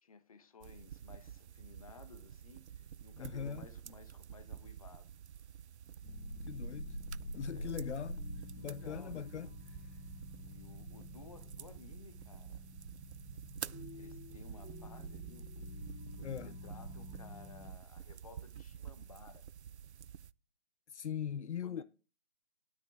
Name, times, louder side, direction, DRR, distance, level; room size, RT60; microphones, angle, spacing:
voice 1, 0.0-5.1 7.3-7.8 8.5-9.5 10.3-12.6 13.9-15.5 16.1-19.5 21.6-21.8, left 5 dB, 30° left, 1.1 m, -57 dB
sound 1, 0.6-20.3, right 9 dB, 75° right, 0.5 m, -50 dB
voice 2, 3.2-3.7 6.5-7.0 7.3-8.2 8.6-9.5 16.2-16.6 20.9-21.8, left 8 dB, 80° left, 0.6 m, -40 dB
sound 2, 6.0-17.7, left 1 dB, 60° left, 5.3 m, -47 dB
10.5 x 9.7 x 3.5 m
hypercardioid pair, 170°, 34 cm